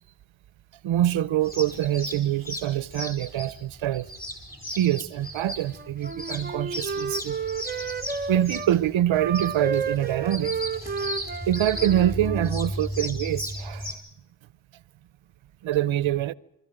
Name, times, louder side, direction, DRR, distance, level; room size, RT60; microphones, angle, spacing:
voice 1, 0.8-4.1 4.7-7.4 8.3-10.6 11.5-14.0 15.6-16.3, right 12 dB, 85° right, 0.8 m, -25 dB
sound 1, 1.4-13.9, equal, 20° left, 4.9 m, -35 dB
Wind instrument woodwind instrument, 5.7-8.7 9.1-12.5, right 5 dB, 20° right, 0.8 m, -32 dB
24.5 x 14.0 x 9.0 m
wide cardioid pair, 110°, 46 cm